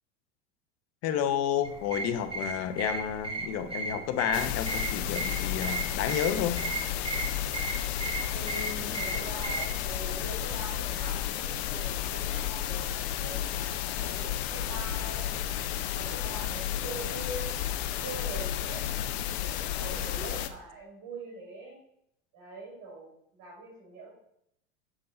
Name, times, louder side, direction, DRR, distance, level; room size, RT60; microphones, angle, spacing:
voice 1, 1.0-6.6, left 9 dB, 45° left, 10 dB, 1.0 m, -30 dB
sound 1, 1.6-9.8, right 3 dB, 15° right, 1.5 m, -36 dB
sound 2, 4.3-20.5, left 11 dB, 65° left, 0.8 m, -32 dB
voice 2, 8.3-15.4 15.9-17.8 18.0-21.7 22.3-24.1, right 1 dB, 55° right, -5 dB, 3.5 m, -43 dB
7.4 x 5.4 x 4.4 m, 0.73 s
hypercardioid pair, 90°, 35 cm